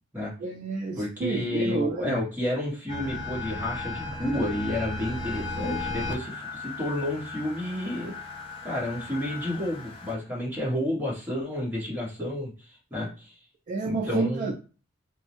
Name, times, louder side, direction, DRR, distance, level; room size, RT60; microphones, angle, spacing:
voice 1, 0.4-2.2 13.7-14.5, right 4 dB, 40° right, 1 dB, 0.3 m, -29 dB
voice 2, 1.0-8.1 8.6-12.5 12.9-13.3 13.8-14.5, left 1 dB, 10° right, -6 dB, 1.1 m, -30 dB
sound 1, 2.9-10.1, left 2 dB, 25° left, 0.4 m, -36 dB
2.6 x 2.0 x 2.9 m, 0.35 s
head